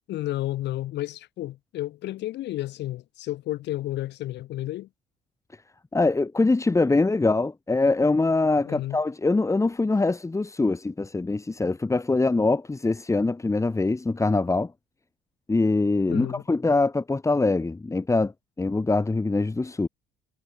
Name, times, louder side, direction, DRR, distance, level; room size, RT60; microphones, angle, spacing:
voice 1, 0.1-4.9 8.6-9.0 16.1-16.4, left 15 dB, 65° left, 3.2 m, -31 dB
voice 2, 5.9-14.7 15.5-18.3 18.6-19.9, left 3 dB, 15° left, 1.3 m, -23 dB
hypercardioid pair, 60°, 19 cm